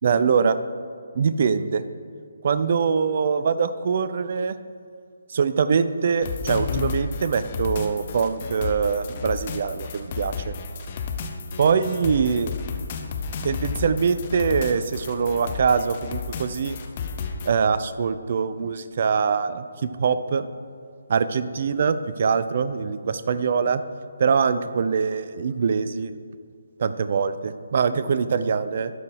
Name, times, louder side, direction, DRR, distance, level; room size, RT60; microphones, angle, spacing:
voice 1, 0.0-0.6 1.1-1.8 2.4-4.6 5.3-10.5 11.6-12.5 13.4-16.8 17.4-20.5 21.1-23.8 24.2-26.1 26.8-28.9, right 6 dB, 45° right, 13 dB, 0.4 m, -23 dB
sound 1, 6.2-17.5, left 5 dB, 35° left, 0.7 m, -32 dB
12.0 x 4.7 x 4.8 m, 2.2 s
figure-of-eight pair, 145°, 0 cm